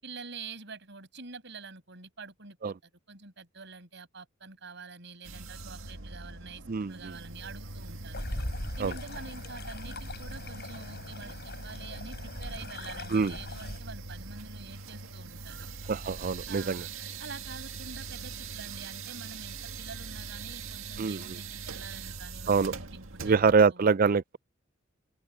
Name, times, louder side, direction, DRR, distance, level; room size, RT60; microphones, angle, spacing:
voice 1, 0.0-2.6 2.8-8.3 8.8-15.7 16.5-16.9 17.2-23.9, right 4 dB, 60° right, 6.4 m, -46 dB
sound 1, 5.2-23.7, right 4 dB, 75° right, 2.0 m, -42 dB
sound 2, 8.1-13.8, left 1 dB, 50° left, 7.7 m, -40 dB
voice 2, 15.9-16.8 21.0-21.2 22.5-22.7 23.2-24.4, right 5 dB, 45° right, 0.5 m, -24 dB
head